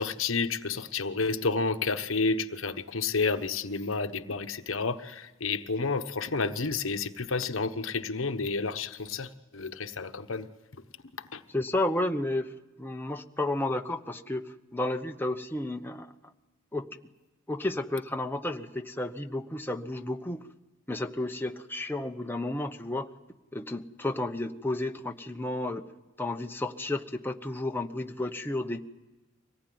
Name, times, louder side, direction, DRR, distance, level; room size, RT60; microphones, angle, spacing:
voice 1, 0.0-10.8 11.2-11.4, left 4 dB, 80° left, 8 dB, 1.1 m, -30 dB
voice 2, 11.5-12.5 12.8-16.1 16.7-16.9 17.5-20.4 20.9-23.1 23.5-25.8 26.2-28.8, left 1 dB, 10° left, 4 dB, 0.9 m, -32 dB
24.5 x 19.0 x 9.3 m, 1.1 s
head